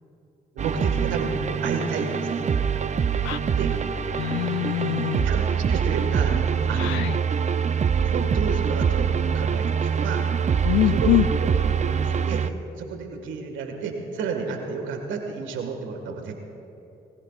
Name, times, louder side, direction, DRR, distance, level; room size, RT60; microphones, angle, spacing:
voice 1, 0.5-1.3 1.6-2.7 3.5-3.7 5.2-6.4 6.7-7.1 8.0-10.3 10.9-11.1 11.4-12.5 12.8-16.4, right 5 dB, 75° right, 4 dB, 1.8 m, -31 dB
sound 1, 0.6-12.5, right 7 dB, 35° right, 0.6 m, -24 dB
voice 2, 3.2-3.6 4.2-5.3 6.8-7.2 10.6-11.3, left 16 dB, 80° left, 17 dB, 0.4 m, -24 dB
20.0 x 15.5 x 2.5 m, 2.9 s
hypercardioid pair, 50°, 20 cm